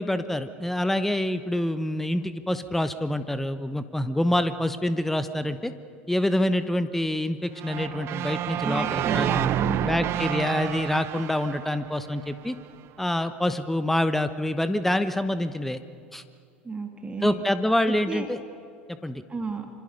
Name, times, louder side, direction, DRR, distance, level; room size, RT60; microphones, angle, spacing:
voice 1, 0.0-5.7 6.1-9.5 9.8-12.6 13.0-15.8 16.1-16.2 17.2-18.4 19.0-19.2, left 1 dB, 5° left, 12 dB, 1.0 m, -26 dB
sound 1, 7.6-12.6, right 12 dB, 45° right, 0.7 m, -29 dB
voice 2, 8.6-10.1 16.6-17.5 18.1-18.3 19.3-19.7, right 3 dB, 20° right, 5 dB, 2.1 m, -32 dB
26.5 x 26.0 x 5.5 m, 2.5 s
figure-of-eight pair, 70°, 6 cm